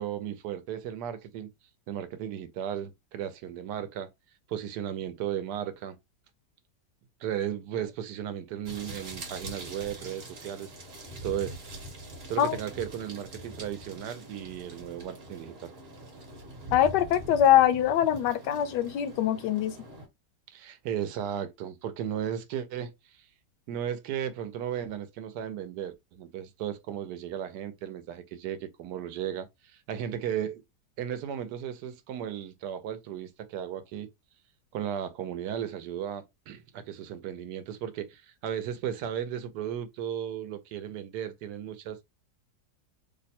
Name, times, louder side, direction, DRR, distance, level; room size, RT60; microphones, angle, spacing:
voice 1, 0.0-1.5 1.9-4.1 4.5-6.0 7.2-10.7 11.2-11.6 12.3-15.7 20.5-23.3 23.7-30.6 31.0-34.1 34.7-42.0, right 9 dB, 75° right, 1.1 m, -35 dB
sound 1, 8.6-20.1, right 1 dB, 40° right, 1.1 m, -43 dB
voice 2, 16.7-19.7, left 10 dB, 80° left, 1.2 m, -23 dB
3.0 x 2.1 x 4.2 m
omnidirectional pair, 1.9 m